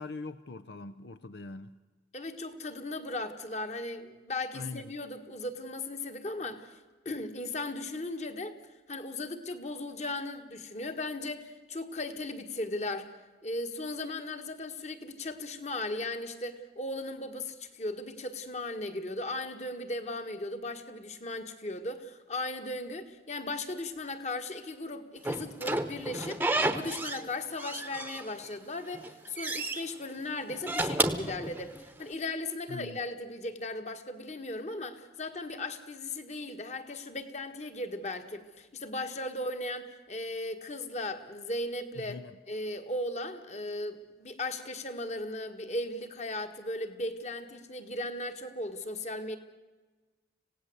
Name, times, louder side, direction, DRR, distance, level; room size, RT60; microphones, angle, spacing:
voice 1, 0.0-1.7 4.5-4.8 32.7-33.0 42.0-42.3, left 3 dB, 75° left, 12 dB, 0.7 m, -42 dB
voice 2, 2.1-6.8 7.0-8.5 8.9-13.1 13.4-42.2 42.5-49.4, left 2 dB, 40° left, 7 dB, 1.7 m, -37 dB
Slam / Squeak, 25.2-27.3 27.6-28.6 28.9-29.8 30.5-32.0, right 2 dB, 10° right, 1.0 m, -31 dB
26.5 x 17.0 x 7.9 m, 1.3 s
head